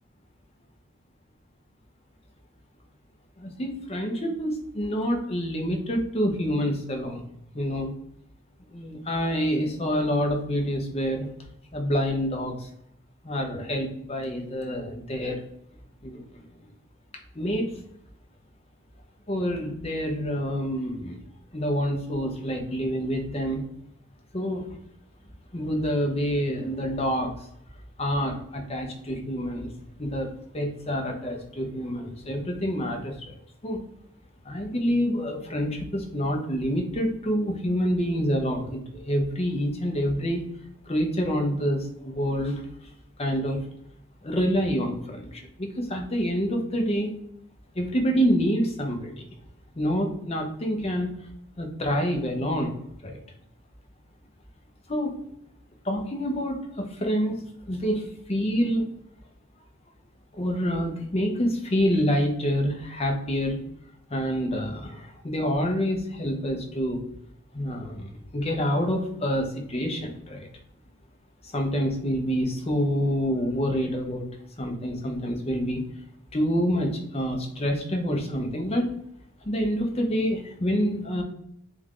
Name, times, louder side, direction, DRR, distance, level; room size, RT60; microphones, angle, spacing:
voice 1, 3.4-7.2 7.5-7.9 8.7-11.3 11.7-12.7 13.2-15.4 16.0-16.4 17.4-17.7 19.3-21.2 21.5-23.6 24.3-24.7 25.5-27.3 28.0-29.7 30.0-33.3 33.6-33.8 34.5-40.4 40.9-42.6 43.2-43.6 44.2-47.1 47.8-49.3 49.8-51.1 51.6-52.7 53.0-53.2 54.9-55.2 55.8-58.9 60.3-63.6 64.1-67.0 67.5-70.5 71.5-74.3 74.6-75.8 76.3-78.9 79.4-81.2, equal, 25° left, 3 dB, 0.7 m, -27 dB
3.6 x 3.4 x 3.6 m, 0.74 s
head